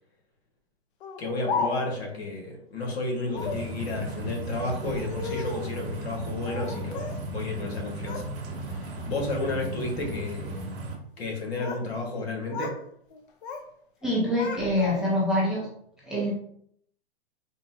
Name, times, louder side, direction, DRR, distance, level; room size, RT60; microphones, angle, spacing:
Speech, 1.0-2.1 3.3-3.7 4.7-5.7 6.4-7.2 7.6-8.3 8.7-9.1 9.7-10.1 11.2-11.9 12.2-12.8 13.1-13.7 14.0-15.3, left 5 dB, 55° left, 0.5 m, -35 dB
voice 1, 1.2-8.2 8.7-10.6 11.2-12.7, left 2 dB, 80° left, 0 dB, 1.3 m, -32 dB
sound 1, 3.3-11.0, right 1 dB, 60° right, 0.8 m, -36 dB
voice 2, 14.0-15.7 16.0-16.3, left 1 dB, ahead, -7 dB, 0.5 m, -25 dB
3.8 x 2.1 x 2.6 m, 0.67 s
hypercardioid pair, 140°, 31 cm